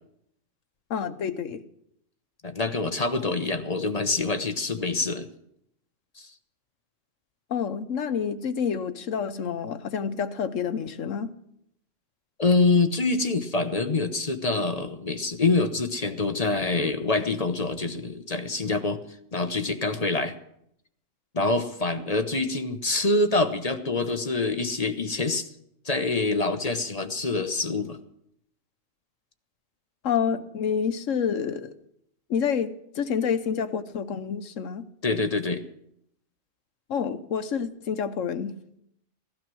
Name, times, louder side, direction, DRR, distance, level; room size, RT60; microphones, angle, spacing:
voice 1, 0.9-1.6 7.5-11.3 30.0-31.7 32.3-34.8 36.9-38.5, left 7 dB, 75° left, 11 dB, 1.3 m, -28 dB
voice 2, 2.4-5.3 6.2-6.3 12.4-19.0 19.3-20.4 21.3-25.5 25.8-28.0 35.0-35.6, left 3 dB, 35° left, 8 dB, 0.9 m, -25 dB
17.0 x 12.0 x 6.2 m, 0.74 s
omnidirectional pair, 1.4 m